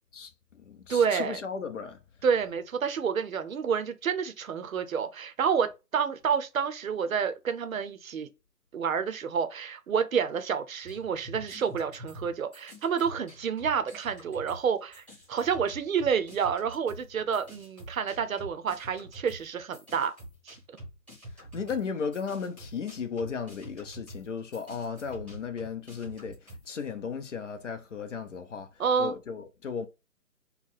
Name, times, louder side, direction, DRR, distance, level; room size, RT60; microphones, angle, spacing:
voice 1, 0.1-2.0 21.3-29.9, left 6 dB, 50° left, 0.8 m, -35 dB
voice 2, 0.9-1.4 2.2-8.3 8.7-20.1 20.5-20.6 28.8-29.1, right 6 dB, 60° right, 0.8 m, -29 dB
sound 1, 10.8-14.7 14.9-26.7, equal, ahead, 1.1 m, -46 dB
4.2 x 2.2 x 4.1 m
figure-of-eight pair, 145°, 47 cm